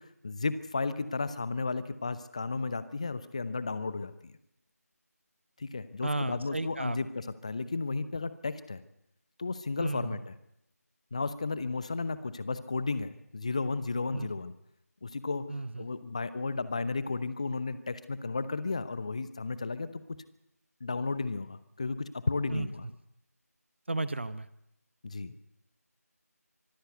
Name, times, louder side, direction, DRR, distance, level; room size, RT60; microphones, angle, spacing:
voice 1, 0.2-4.3 5.6-8.8 9.4-10.3 11.1-14.5 15.0-15.4 15.8-20.0 20.8-22.8 25.0-25.3, left 3 dB, 25° left, 14 dB, 0.8 m, -33 dB
voice 2, 6.0-7.0 9.8-10.2 14.1-14.3 15.5-15.9 22.5-22.7 23.9-24.5, right 2 dB, 45° right, 15 dB, 0.9 m, -33 dB
24.5 x 14.0 x 8.1 m, 0.80 s
figure-of-eight pair, 165°, 9 cm